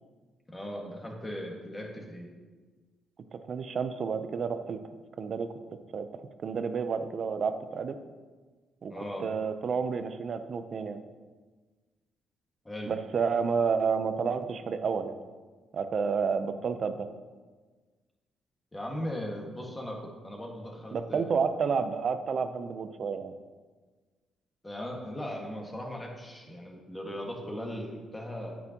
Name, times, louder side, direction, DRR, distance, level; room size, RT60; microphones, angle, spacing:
voice 1, 0.5-2.3 8.9-9.2 12.7-13.0 18.7-21.5 24.6-28.6, equal, 15° left, 0 dB, 1.8 m, -38 dB
voice 2, 3.3-4.8 5.2-5.5 5.9-8.0 8.8-8.9 9.2-11.0 12.9-15.1 15.7-17.1 20.9-23.3, right 5 dB, 55° right, 9 dB, 0.6 m, -30 dB
9.5 x 8.4 x 2.9 m, 1.4 s
cardioid pair, 90°, 0 cm